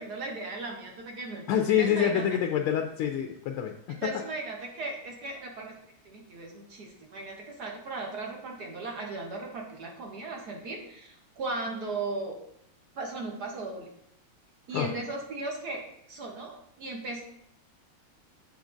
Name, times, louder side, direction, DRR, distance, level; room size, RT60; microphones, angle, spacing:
voice 1, 0.0-2.4 3.9-5.7 6.0-12.4 12.9-13.9 14.7-17.2, right 3 dB, 55° right, 0 dB, 1.4 m, -37 dB
voice 2, 1.5-4.1 14.7-14.9, left 9 dB, 80° left, 4 dB, 1.5 m, -27 dB
7.4 x 7.2 x 2.6 m, 0.74 s
omnidirectional pair, 2.4 m